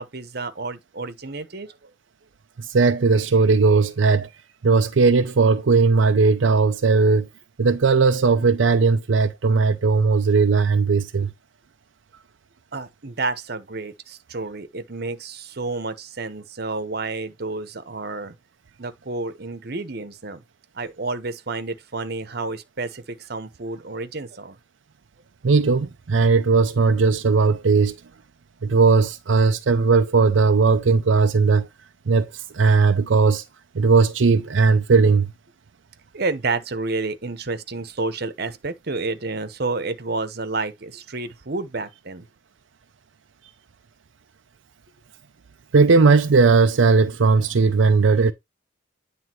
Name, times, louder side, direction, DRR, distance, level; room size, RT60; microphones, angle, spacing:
voice 1, 0.0-1.8 12.7-18.3 18.8-20.4 20.7-24.6 36.1-42.3, right 3 dB, 55° right, 1.0 m, -30 dB
voice 2, 2.6-4.3 4.6-7.3 7.6-11.3 25.4-28.0 28.6-31.7 32.1-33.4 33.8-35.3 45.7-48.3, right 4 dB, 80° right, 0.6 m, -18 dB
9.5 x 3.4 x 4.5 m
head